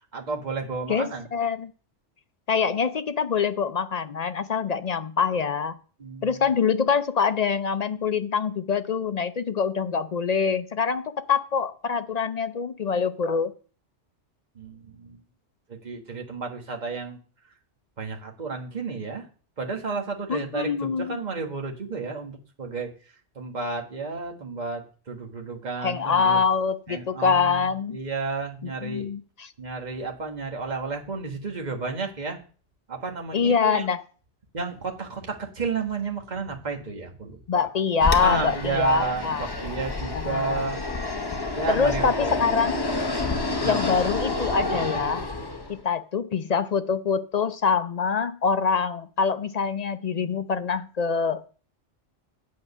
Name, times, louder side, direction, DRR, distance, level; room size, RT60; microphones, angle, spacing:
voice 1, 0.1-1.2 6.0-6.4 14.5-15.2 15.7-17.2 18.0-19.3 19.6-22.9 23.3-26.4 26.9-29.1 29.6-32.4 32.9-33.8 34.5-37.7 38.2-40.8 41.5-42.6 43.6-43.8, right 4 dB, 40° right, 2 dB, 1.6 m, -32 dB
voice 2, 0.9-1.7 2.5-5.8 6.2-13.5 20.3-21.2 25.8-28.0 28.6-29.5 33.3-34.0 37.5-39.5 40.1-40.6 41.7-42.8 43.6-45.3 45.7-51.4, left 6 dB, 55° left, 11 dB, 0.4 m, -25 dB
Fixed-wing aircraft airplane, 38.0-45.8, left 3 dB, 25° left, 0.8 m, -29 dB
8.5 x 7.6 x 5.4 m, 0.40 s
omnidirectional pair, 1.2 m